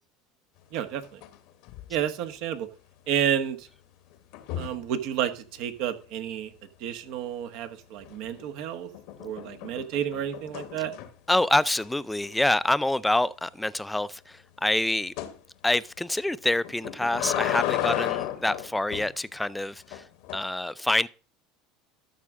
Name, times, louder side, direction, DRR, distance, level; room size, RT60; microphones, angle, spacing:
sound 1, 0.7-1.4 1.6-2.0 4.3-4.9 8.0-8.5 8.9-11.3 11.8-11.9 12.2-12.3 12.7-12.8 15.2-15.4 16.6-19.1 19.9-20.4, left 12 dB, 70° left, 1.1 m, -33 dB
voice 1, 0.7-1.2 1.9-2.7 3.1-3.7 4.6-6.5 6.8-8.9 9.2-10.9, right 9 dB, 65° right, 1.3 m, -30 dB
voice 2, 11.3-15.1 15.6-20.0 20.3-21.1, left 1 dB, 5° left, 0.4 m, -26 dB
13.0 x 6.1 x 3.7 m
supercardioid pair, 100°, 0 cm